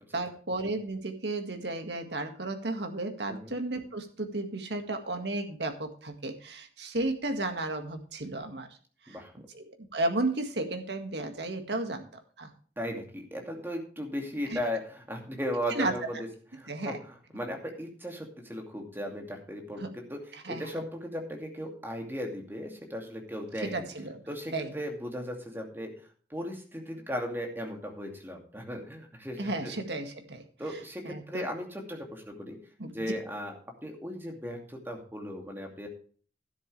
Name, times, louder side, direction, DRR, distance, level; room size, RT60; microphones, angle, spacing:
voice 1, 0.1-8.7 9.1-9.2 9.5-12.1 12.4-12.5 14.5-14.6 15.7-15.9 16.7-17.0 19.8-19.9 20.4-20.7 23.6-24.2 24.5-24.7 29.4-31.5 32.8-33.0, right 2 dB, 80° right, 5 dB, 2.0 m, -33 dB
voice 2, 12.8-16.2 16.6-17.0 17.3-23.9 24.3-25.9 26.3-29.7 30.6-32.6 32.9-33.5 33.8-35.9, equal, 10° right, 2 dB, 2.5 m, -37 dB
12.5 x 10.5 x 3.3 m, 0.43 s
head